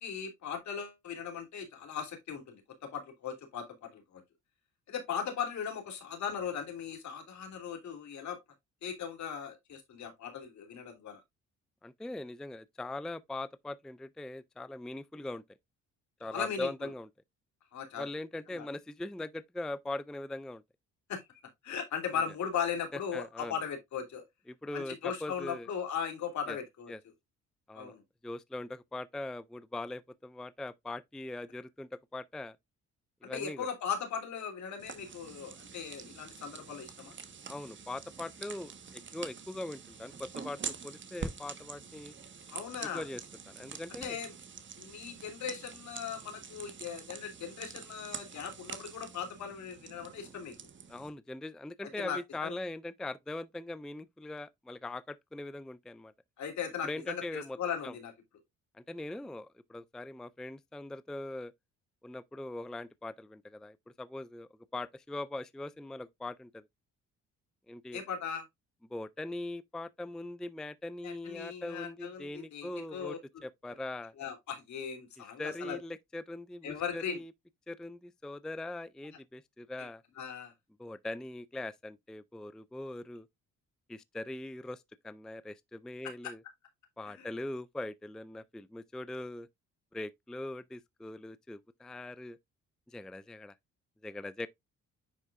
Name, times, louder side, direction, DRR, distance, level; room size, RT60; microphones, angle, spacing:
voice 1, 0.0-2.6 2.9-4.2 4.9-8.4 8.8-11.2 16.3-16.9 17.7-18.0 18.5-18.7 21.1-21.2 21.6-24.2 24.7-26.9 27.7-28.0 33.3-37.1 42.5-43.0 44.0-44.3 44.8-50.5 52.0-52.5 56.4-58.1 67.9-68.4 71.0-73.2 74.2-75.8 76.6-77.2 80.2-80.5 87.2-87.3, left 7 dB, 65° left, 3.1 m, -38 dB
voice 2, 11.8-15.4 16.2-17.1 18.0-20.6 22.9-23.6 24.5-25.7 26.5-26.6 26.9-27.0 27.7-28.0 28.2-32.6 33.2-33.7 37.5-42.1 42.9-44.2 50.9-56.1 56.8-57.6 57.8-57.9 58.7-61.5 62.0-66.6 67.7-68.0 68.9-73.2 73.4-74.1 75.4-77.3 77.7-80.0 80.8-83.3 83.9-86.4 87.0-89.5 89.9-92.4 92.9-93.5 94.0-94.5, left 2 dB, ahead, 0.4 m, -41 dB
sound 1, 34.8-51.1, right 6 dB, 40° right, 1.3 m, -46 dB
10.0 x 4.6 x 2.5 m
cardioid pair, 90°, 30 cm